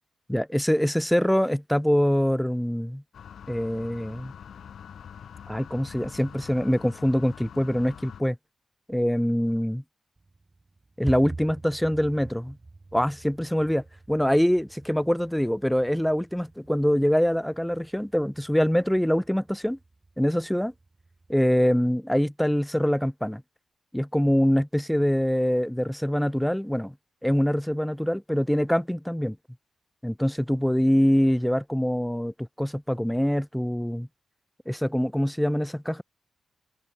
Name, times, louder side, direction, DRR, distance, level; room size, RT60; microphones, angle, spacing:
voice 1, 0.3-3.0 3.5-4.3 5.5-8.4 8.9-9.8 11.0-12.6 12.9-19.8 20.2-20.7 21.3-23.4 23.9-26.9 27.2-29.4 30.0-34.1 34.7-36.0, equal, 5° left, 0.8 m, -24 dB
sound 1, 3.1-8.2, left 8 dB, 75° left, 3.8 m, -44 dB
sound 2, 10.2-21.5, right 3 dB, 30° right, 1.2 m, -45 dB
open air
cardioid pair, 55°, 0 cm